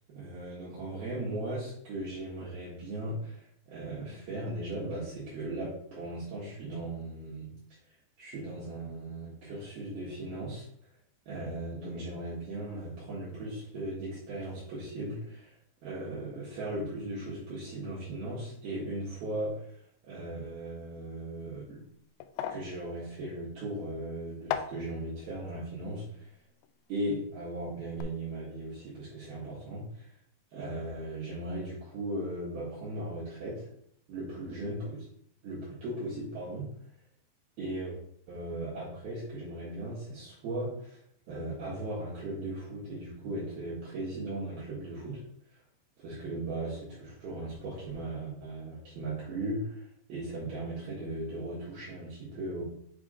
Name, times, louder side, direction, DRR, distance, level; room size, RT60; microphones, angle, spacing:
voice 1, 0.1-7.5 8.2-10.7 11.3-15.5 15.8-19.8 20.0-21.8 22.5-26.3 26.9-30.1 30.5-33.7 34.1-35.1 35.4-36.7 37.6-38.0 38.3-41.0 41.3-45.2 46.0-52.6, right 1 dB, 65° right, -7 dB, 3.1 m, -37 dB
sound 1, 21.3-27.5 27.7-28.0, left 10 dB, 85° left, 2.4 m, -41 dB
7.7 x 3.5 x 5.0 m, 0.67 s
omnidirectional pair, 5.4 m